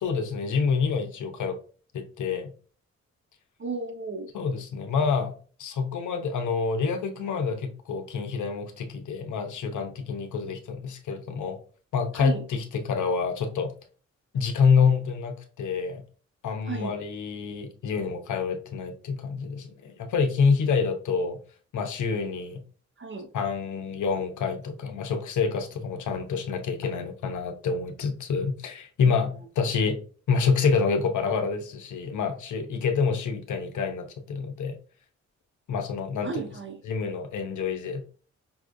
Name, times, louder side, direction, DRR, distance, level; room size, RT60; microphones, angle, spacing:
voice 1, 0.0-1.6 1.9-2.5 4.3-5.3 5.6-11.6 11.9-13.7 14.3-16.0 16.4-21.4 21.7-22.6 23.3-30.0 30.3-34.8 35.7-36.5 36.8-38.1, left 5 dB, 80° left, 6 dB, 0.7 m, -27 dB
voice 2, 3.6-4.3 12.1-12.4 16.7-17.0 23.0-23.3 36.2-36.8, right 4 dB, 40° right, 3 dB, 1.1 m, -34 dB
5.4 x 2.4 x 2.5 m, 0.40 s
cardioid pair, 60°, 30 cm